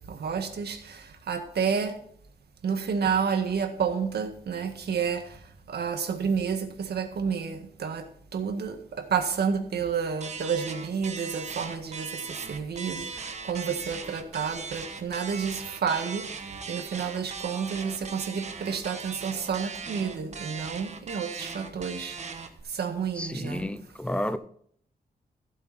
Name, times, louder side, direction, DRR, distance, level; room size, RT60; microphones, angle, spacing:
voice 1, 0.1-2.0 2.6-5.4 5.7-8.1 8.3-16.3 16.7-22.2 22.7-23.7, right 6 dB, 85° right, 1.7 m, -30 dB
sound 1, 10.2-22.6, right 5 dB, 45° right, 1.2 m, -39 dB
voice 2, 23.2-24.4, left 1 dB, 5° left, 0.6 m, -31 dB
15.0 x 8.2 x 4.3 m
wide cardioid pair, 170°, 16 cm